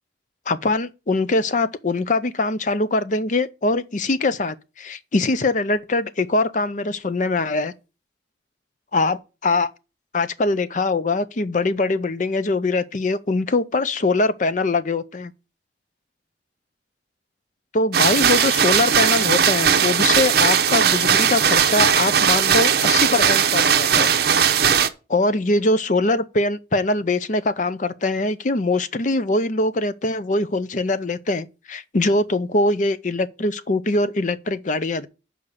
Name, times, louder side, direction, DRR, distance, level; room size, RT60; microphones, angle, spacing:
voice 1, 0.5-7.7 8.9-9.7 10.1-15.3 17.7-24.1 25.1-35.1, left 2 dB, 45° left, 0.6 m, -22 dB
sound 1, 17.9-24.9, right 8 dB, 60° right, 0.7 m, -18 dB
6.7 x 5.1 x 7.1 m
head